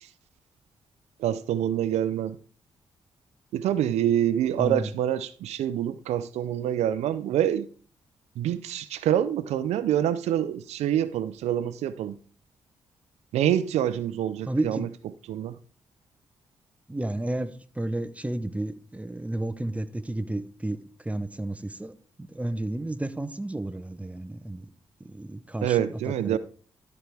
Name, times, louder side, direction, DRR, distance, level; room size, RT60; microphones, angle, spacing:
voice 1, 1.2-2.4 3.5-7.7 8.4-12.2 13.3-14.9 15.3-15.5 25.6-26.4, right 11 dB, 80° right, 0.5 m, -26 dB
voice 2, 4.6-4.9 14.5-14.9 16.9-24.7 25.0-26.4, right 1 dB, 10° right, 0.8 m, -32 dB
12.5 x 4.7 x 3.4 m
supercardioid pair, 50°, 11 cm